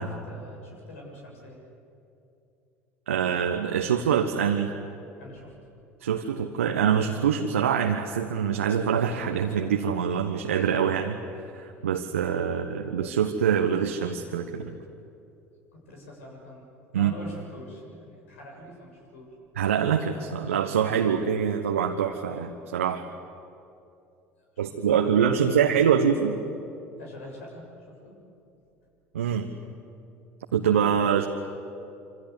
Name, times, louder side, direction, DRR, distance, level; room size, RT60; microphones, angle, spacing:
voice 1, 0.0-1.6 5.2-5.5 12.5-12.6 15.7-19.4 24.5-24.6 24.9-25.4 27.0-28.2, left 1 dB, 70° left, -1 dB, 7.5 m, -45 dB
voice 2, 3.1-4.7 6.0-11.2 11.5-14.8 16.9-17.1 19.6-23.1 24.6-26.4 29.1-29.5 30.5-31.3, right 8 dB, 75° right, 4 dB, 1.2 m, -24 dB
26.5 x 26.0 x 8.2 m, 2.6 s
figure-of-eight pair, 65°, 7 cm